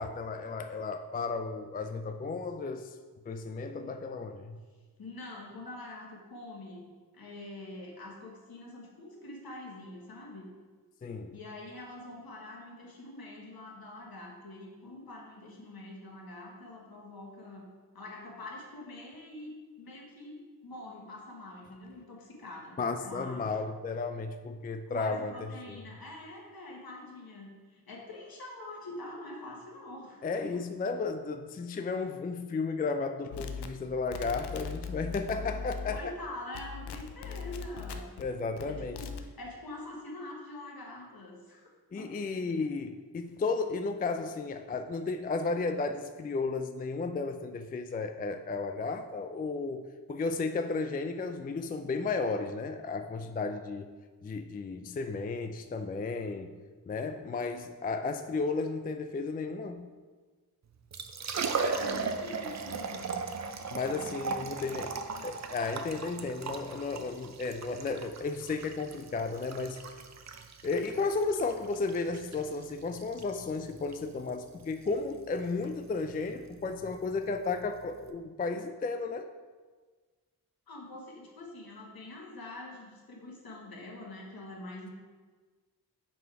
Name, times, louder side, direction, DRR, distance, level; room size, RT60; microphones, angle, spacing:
voice 1, 0.0-3.0 3.3-4.6 11.0-11.4 22.8-25.8 30.2-36.1 38.2-39.0 41.9-53.9 54.2-56.6 56.9-59.9 63.7-69.8 70.6-79.3, left 4 dB, 25° left, 8 dB, 0.3 m, -34 dB
voice 2, 5.0-10.5 11.3-17.7 17.9-22.8 23.0-23.5 24.9-30.6 35.9-38.1 38.7-41.7 41.9-42.1 61.6-63.1 63.9-64.8 80.7-84.9, left 2 dB, 65° left, -1 dB, 1.4 m, -45 dB
sound 1, 33.3-36.2 36.5-38.2 38.6-39.3, left 5 dB, 80° left, 0.5 m, -39 dB
Liquid, 60.7-78.1, right 4 dB, 45° right, 0.6 m, -38 dB
5.8 x 3.8 x 4.6 m, 1.4 s
cardioid pair, 45°, 39 cm